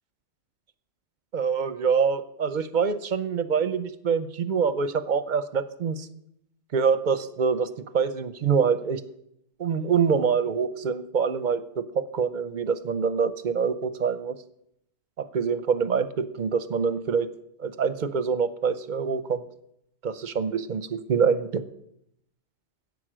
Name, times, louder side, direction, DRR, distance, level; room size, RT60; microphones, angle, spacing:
voice 1, 1.3-6.1 6.7-9.0 9.6-14.3 15.2-17.3 17.6-19.4 20.0-21.6, right 6 dB, 50° right, 13 dB, 0.7 m, -25 dB
11.0 x 8.3 x 6.1 m, 0.78 s
omnidirectional pair, 1.1 m